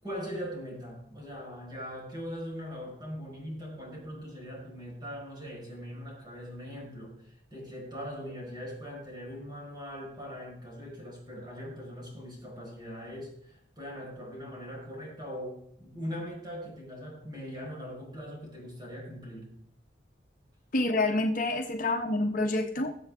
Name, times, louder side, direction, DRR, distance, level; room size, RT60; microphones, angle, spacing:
voice 1, 0.0-19.5, equal, 25° right, -2 dB, 5.0 m, -41 dB
voice 2, 20.7-23.0, left 2 dB, 45° left, 4 dB, 1.0 m, -27 dB
21.0 x 7.7 x 3.6 m, 0.72 s
head